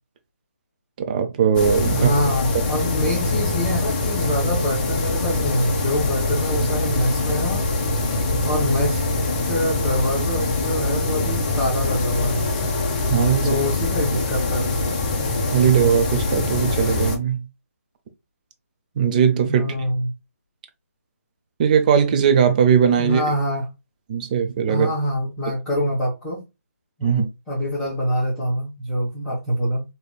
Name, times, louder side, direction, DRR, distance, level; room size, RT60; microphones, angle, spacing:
voice 1, 1.0-2.1 13.1-13.6 15.5-17.4 19.0-19.7 21.6-23.2 24.1-24.9 27.0-27.3, right 7 dB, 30° right, 0.7 m, -19 dB
sound 1, 1.5-17.2, left 2 dB, 30° left, 0.8 m, -23 dB
voice 2, 1.9-7.7 7.9-9.0 9.4-12.4 13.4-14.7 19.5-20.1 23.0-23.7 24.7-26.4 27.0-29.8, equal, 10° left, 1.4 m, -25 dB
5.0 x 3.0 x 2.3 m
figure-of-eight pair, 155°, 9 cm